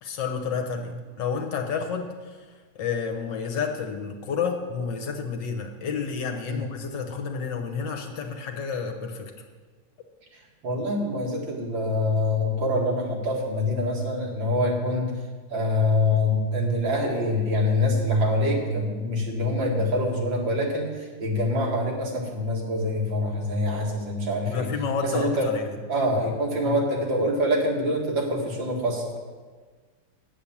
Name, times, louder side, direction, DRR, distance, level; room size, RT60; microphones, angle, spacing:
voice 1, 0.0-9.3 24.4-25.8 26.6-26.8, left 5 dB, 65° left, 4 dB, 1.6 m, -30 dB
voice 2, 10.6-15.1 15.5-24.7 25.0-25.5 25.9-29.2, left 1 dB, 75° right, -2 dB, 2.7 m, -25 dB
8.7 x 8.3 x 7.2 m, 1.4 s
omnidirectional pair, 2.1 m